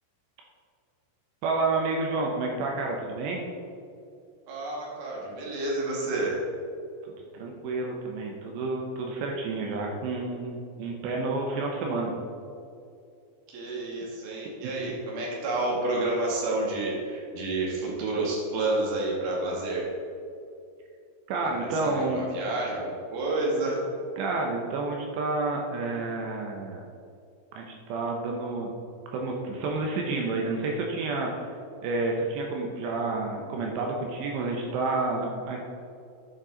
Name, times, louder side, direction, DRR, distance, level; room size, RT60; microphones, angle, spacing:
voice 1, 1.4-3.5 7.3-12.1 14.6-14.7 21.3-22.2 24.2-26.8 27.5-28.7 29.1-31.3 31.8-35.6, right 3 dB, 75° right, 0 dB, 2.7 m, -30 dB
voice 2, 4.5-6.4 13.5-19.9 21.6-23.8, right 2 dB, 60° right, -3 dB, 3.3 m, -29 dB
11.0 x 7.1 x 3.9 m, 2.5 s
omnidirectional pair, 5.7 m